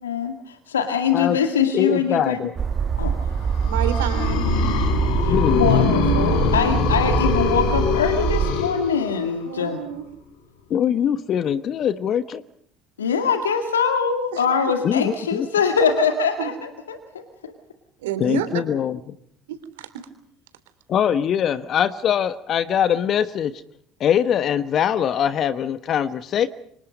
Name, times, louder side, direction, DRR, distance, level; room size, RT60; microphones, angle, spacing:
voice 1, 0.0-2.4 3.0-3.2 5.2-9.8 13.0-17.5, left 6 dB, 85° left, 7 dB, 2.0 m, -23 dB
voice 2, 1.7-2.5 5.3-5.9 10.7-12.4 14.8-15.5 18.2-19.0 20.9-23.5 24.0-26.5, left 9 dB, 50° left, 13 dB, 1.2 m, -22 dB
sound 1, 2.6-8.5, right 7 dB, 40° right, 1.4 m, -24 dB
sound 2, 3.5-9.4, left 6 dB, 70° left, 3.8 m, -23 dB
voice 3, 3.7-4.4 9.4-10.0 14.3-14.4 16.4-16.5 18.0-18.5 19.5-19.9, right 11 dB, 75° right, 10 dB, 3.4 m, -29 dB
29.5 x 25.5 x 5.2 m, 0.66 s
hypercardioid pair, 60°, 0 cm